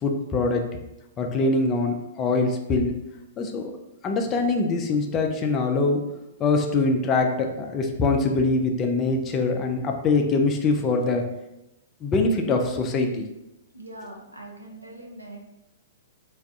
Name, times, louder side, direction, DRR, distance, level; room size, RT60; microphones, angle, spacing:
voice 1, 0.0-0.7 1.2-3.0 3.4-3.7 4.0-6.0 6.4-11.3 12.0-13.3, left 3 dB, 25° left, 3 dB, 0.3 m, -23 dB
voice 2, 13.7-15.4, right 1 dB, 85° right, -1 dB, 0.6 m, -42 dB
2.4 x 2.2 x 3.5 m, 0.91 s
figure-of-eight pair, 110°, 0 cm